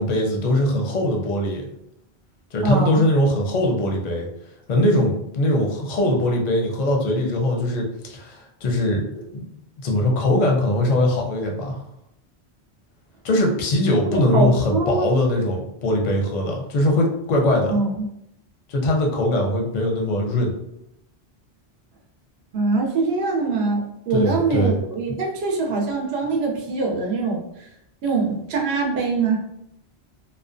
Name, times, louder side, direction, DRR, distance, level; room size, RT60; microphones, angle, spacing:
voice 1, 0.0-1.7 2.5-4.3 4.7-9.5 9.8-11.8 13.2-17.7 18.7-20.6 24.1-24.8, left 1 dB, 50° left, 1 dB, 0.5 m, -21 dB
voice 2, 2.6-3.0 14.1-15.1 17.7-18.1 22.5-27.7 28.0-29.4, right 3 dB, 70° right, -1 dB, 0.8 m, -23 dB
2.5 x 2.1 x 2.5 m, 0.79 s
omnidirectional pair, 1.1 m